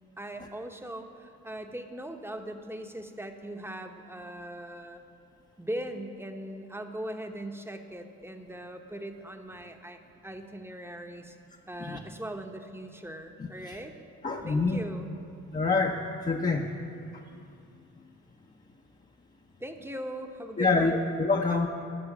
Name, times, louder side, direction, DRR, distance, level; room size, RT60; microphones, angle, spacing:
voice 1, 0.2-5.0 5.6-11.4 11.7-13.9 14.4-15.1 19.6-21.0 21.5-21.7, right 1 dB, 5° right, 5 dB, 1.0 m, -40 dB
voice 2, 14.2-14.8 15.5-16.7 20.6-21.7, left 3 dB, 25° left, 0 dB, 0.8 m, -26 dB
14.0 x 6.2 x 6.1 m, 2.5 s
supercardioid pair, 60°, 32 cm